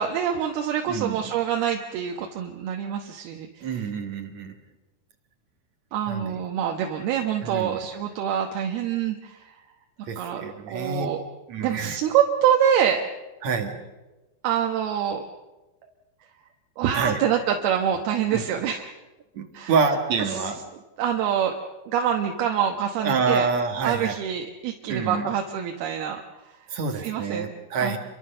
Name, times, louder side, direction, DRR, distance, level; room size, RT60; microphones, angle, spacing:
voice 1, 0.0-3.7 5.9-9.5 10.2-10.4 10.7-11.2 11.6-13.0 14.4-15.2 16.8-18.9 19.5-19.7 20.3-20.5 21.0-21.5 21.9-23.5 23.8-26.2 27.0-27.5 27.8-28.0, right 9 dB, 70° right, 3 dB, 2.8 m, -25 dB
voice 2, 0.9-1.2 3.6-4.5 6.1-6.4 7.4-7.8 10.1-11.1 11.5-12.0 13.4-13.8 16.9-17.2 18.3-18.4 19.3-20.6 23.0-24.2 24.9-25.3 26.7-28.0, right 5 dB, 55° right, 6 dB, 2.2 m, -27 dB
29.0 x 23.5 x 6.7 m, 1.1 s
omnidirectional pair, 5.2 m